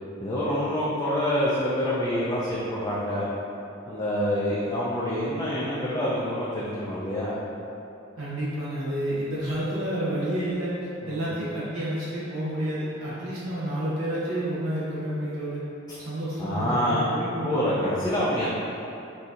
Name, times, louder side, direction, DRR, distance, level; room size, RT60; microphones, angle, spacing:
voice 1, 0.2-3.3 3.9-7.3 11.0-11.3 16.4-17.1 17.4-18.5, equal, 20° left, -9 dB, 0.4 m, -26 dB
voice 2, 8.2-10.7 11.1-15.6 16.0-17.6, right 1 dB, 90° right, -9 dB, 0.8 m, -30 dB
4.1 x 2.7 x 2.4 m, 2.8 s
head